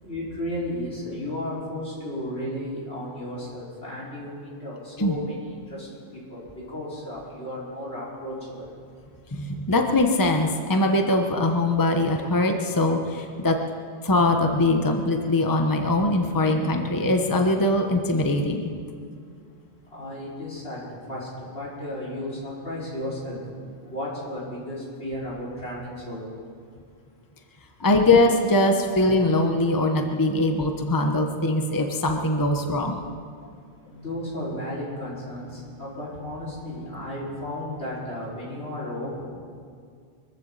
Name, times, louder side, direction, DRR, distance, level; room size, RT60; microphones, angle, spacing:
voice 1, 0.0-8.7 19.9-20.8 21.1-23.4 23.9-26.3 33.9-39.2, left 1 dB, 75° left, -6 dB, 5.4 m, -34 dB
voice 2, 9.3-13.6 14.0-18.7 27.8-33.0, left 2 dB, 20° left, 4 dB, 1.0 m, -22 dB
23.5 x 15.0 x 4.1 m, 2.2 s
omnidirectional pair, 1.1 m